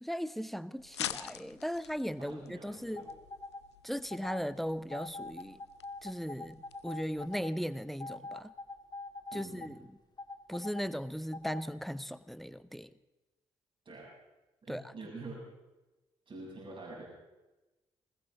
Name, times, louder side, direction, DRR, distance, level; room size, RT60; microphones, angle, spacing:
voice 1, 0.0-3.1 3.8-5.6 6.0-8.5 9.3-9.8 10.5-12.9 14.7-14.8, equal, ahead, 16 dB, 0.7 m, -37 dB
sound 1, 0.8-7.4, left 11 dB, 80° left, 0.4 m, -46 dB
voice 2, 2.2-3.1 9.3-9.8 13.8-14.1 14.6-15.4 16.3-17.1, right 2 dB, 40° right, -4 dB, 7.7 m, -46 dB
sound 2, 3.0-3.6 4.1-4.4 4.9-7.5 8.0-9.7 10.2-10.8 11.3-11.6, left 3 dB, 30° left, 1.7 m, -43 dB
20.5 x 19.0 x 3.7 m, 1.1 s
figure-of-eight pair, 40°, 14 cm